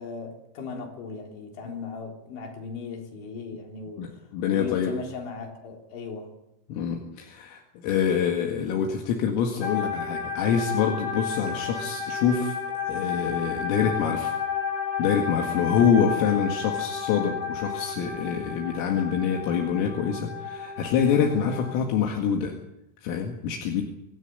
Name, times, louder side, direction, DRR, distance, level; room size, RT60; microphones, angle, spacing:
voice 1, 0.0-4.2 4.5-6.3, left 5 dB, 65° left, 5.8 m, -37 dB
voice 2, 4.0-4.9 6.7-12.6 12.9-14.3 15.0-22.5 23.0-23.8, left 7 dB, 80° left, 4.5 m, -26 dB
sound 1, 9.6-21.7, left 6 dB, 40° left, 6.1 m, -32 dB
24.5 x 14.5 x 9.3 m
omnidirectional pair, 5.9 m